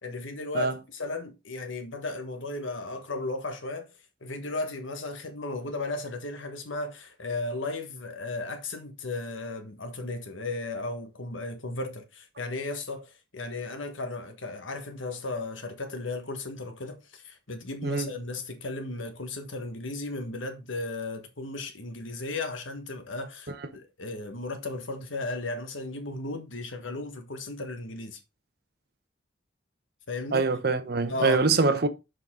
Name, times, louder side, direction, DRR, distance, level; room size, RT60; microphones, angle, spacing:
voice 1, 0.0-3.9 4.2-28.2 30.1-30.4 31.1-31.5, left 2 dB, 85° left, 1.4 m, -35 dB
voice 2, 30.3-31.9, right 4 dB, 55° right, 0.9 m, -24 dB
6.6 x 5.4 x 3.7 m
head